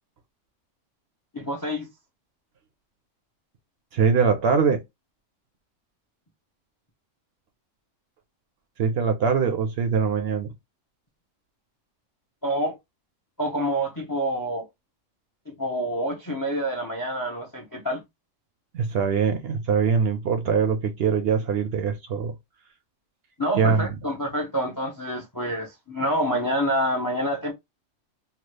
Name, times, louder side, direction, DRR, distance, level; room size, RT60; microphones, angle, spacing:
voice 1, 1.3-1.9 12.4-12.8 13.4-14.7 15.5-18.0 23.4-27.5, equal, 30° left, 0.4 m, -27 dB
voice 2, 3.9-4.8 8.8-10.5 18.7-22.3 23.6-23.9, right 6 dB, 60° right, 0.7 m, -22 dB
2.8 x 2.3 x 3.1 m
omnidirectional pair, 1.3 m